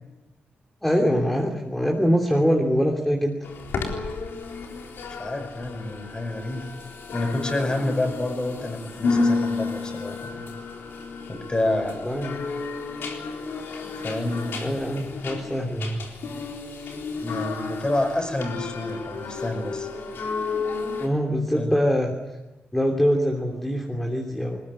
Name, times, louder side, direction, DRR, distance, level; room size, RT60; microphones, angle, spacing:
voice 1, 0.8-3.4 12.0-12.4 14.6-16.0 21.0-22.1 22.7-24.6, equal, 5° left, 0 dB, 3.0 m, -23 dB
sound 1, 3.4-21.1, left 4 dB, 90° left, 3.9 m, -32 dB
voice 2, 5.2-6.6 7.1-10.5 11.3-12.1 13.8-15.0 17.2-19.9 21.5-21.7, left 1 dB, 25° left, 5 dB, 5.7 m, -29 dB
21.0 x 20.0 x 9.9 m, 1.1 s
cardioid pair, 105°, 4 cm